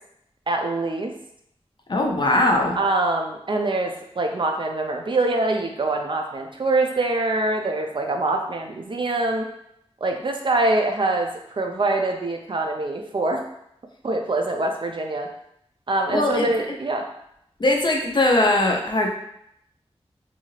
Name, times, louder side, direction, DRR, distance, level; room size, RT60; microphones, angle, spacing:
voice 1, 0.5-1.1 2.8-9.5 10.0-13.4 14.0-15.3 15.9-17.0, right 2 dB, 50° right, 3 dB, 0.4 m, -24 dB
voice 2, 1.9-2.8 16.1-16.5 17.6-19.1, left 1 dB, 45° left, 1 dB, 0.5 m, -20 dB
2.6 x 2.4 x 3.1 m, 0.75 s
wide cardioid pair, 95°, 11 cm